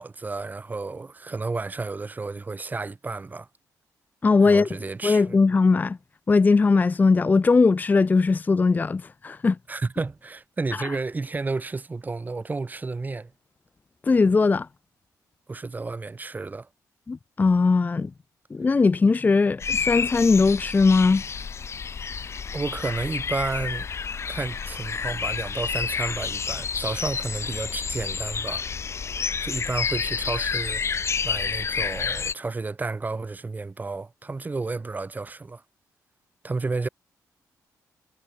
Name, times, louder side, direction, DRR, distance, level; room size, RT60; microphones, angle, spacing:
voice 1, 0.0-3.5 4.4-5.4 9.7-13.3 15.5-16.7 22.5-23.9 24.3-28.6 29.4-30.8 31.2-35.6 36.4-36.9, right 3 dB, 25° right, 1.8 m, -31 dB
voice 2, 4.2-4.7 5.0-6.0 6.3-9.6 10.8-11.0 14.0-14.7 17.1-18.1 18.5-21.2, left 4 dB, 25° left, 0.5 m, -20 dB
sound 1, 19.6-32.3, left 6 dB, 40° left, 1.0 m, -29 dB
cardioid pair, 90°, 7 cm